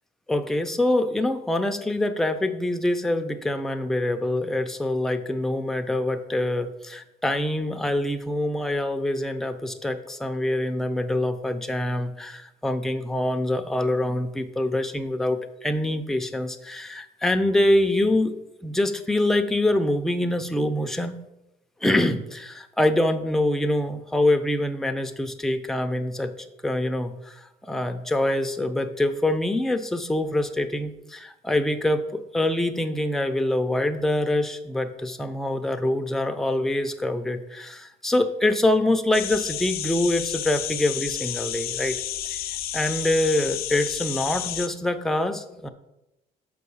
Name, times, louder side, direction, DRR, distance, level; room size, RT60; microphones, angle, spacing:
voice 1, 0.3-18.3 18.6-21.3 21.8-26.3 26.6-42.4 42.7-45.7, left 1 dB, ahead, 6 dB, 0.5 m, -25 dB
sound 1, 39.1-44.7, left 11 dB, 65° left, 0.5 m, -31 dB
6.0 x 4.7 x 5.5 m, 0.90 s
cardioid pair, 110°, 17 cm